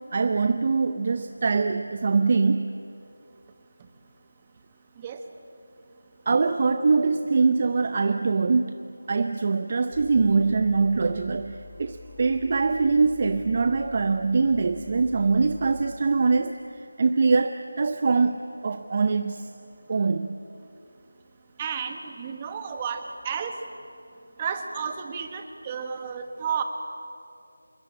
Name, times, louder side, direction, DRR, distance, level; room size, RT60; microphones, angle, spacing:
voice 1, 0.1-2.8 6.3-8.8 9.1-19.5 19.9-20.4, right 4 dB, 35° right, 9 dB, 0.7 m, -23 dB
sound 1, 9.9-15.8 16.2-16.3 19.0-19.4, left 4 dB, 70° left, 7.3 m, -47 dB
voice 2, 21.6-23.5 24.4-26.6, right 7 dB, 15° right, 6 dB, 1.5 m, -32 dB
27.0 x 21.5 x 9.0 m, 2.6 s
figure-of-eight pair, 170°, 0 cm